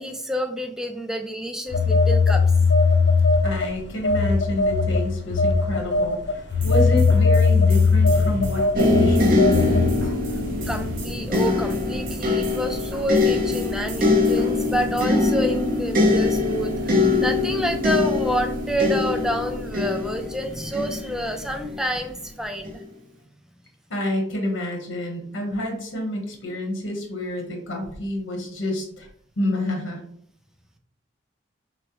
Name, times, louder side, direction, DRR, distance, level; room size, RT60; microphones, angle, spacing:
voice 1, 0.0-2.4 10.7-22.8, equal, 5° right, 5 dB, 0.4 m, -28 dB
Telephone, 1.7-3.7 4.0-9.9, left 4 dB, 60° left, 0.5 m, -19 dB
voice 2, 3.4-9.9 23.9-29.1 29.4-30.0, left 1 dB, 85° left, 1 dB, 1.1 m, -28 dB
sound 1, 6.5-15.0, left 2 dB, 80° right, 1.2 m, -33 dB
sound 2, 8.8-21.8 22.7-22.8, left 2 dB, 45° right, 0.8 m, -22 dB
6.1 x 2.1 x 3.1 m, 0.65 s
head